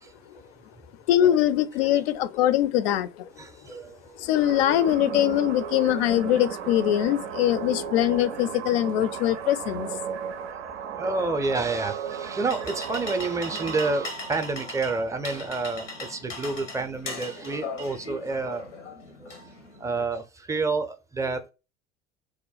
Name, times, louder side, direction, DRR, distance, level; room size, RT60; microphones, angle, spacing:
voice 1, 1.1-3.3 4.2-9.9, left 12 dB, 60° left, 0.5 m, -22 dB
voice 2, 3.4-4.1 10.0-10.1 11.0-18.7 19.2-19.4 19.8-21.5, right 3 dB, 10° right, 0.4 m, -29 dB
sound 1, 4.3-14.1, right 7 dB, 70° right, 0.5 m, -35 dB
sound 2, 12.0-20.0, left 2 dB, 85° left, 0.7 m, -39 dB
3.1 x 2.1 x 3.9 m
figure-of-eight pair, 65°, 36 cm